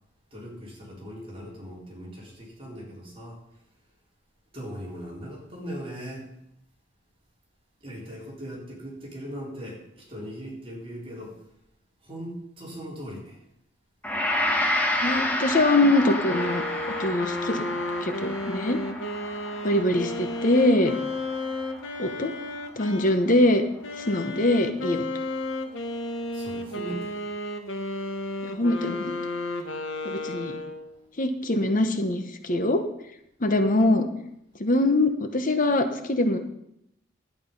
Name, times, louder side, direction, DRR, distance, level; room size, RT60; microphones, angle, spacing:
voice 1, 0.3-3.4 4.5-6.3 7.8-11.4 12.0-13.4 26.3-27.3, equal, 30° right, -4 dB, 4.0 m, -39 dB
Gong, 14.0-23.2, left 1 dB, 10° left, 1.4 m, -30 dB
voice 2, 15.0-16.6 17.0-17.6 18.0-18.8 19.6-20.9 22.0-22.3 22.8-23.6 24.0-25.1 28.4-29.2 30.0-30.6 31.2-32.8 33.4-34.1 34.6-36.4, left 1 dB, 45° left, 7 dB, 1.0 m, -23 dB
sound 1, 16.2-23.2 23.8-31.0, left 2 dB, 75° left, 1.1 m, -33 dB
11.5 x 9.3 x 5.3 m, 0.79 s
head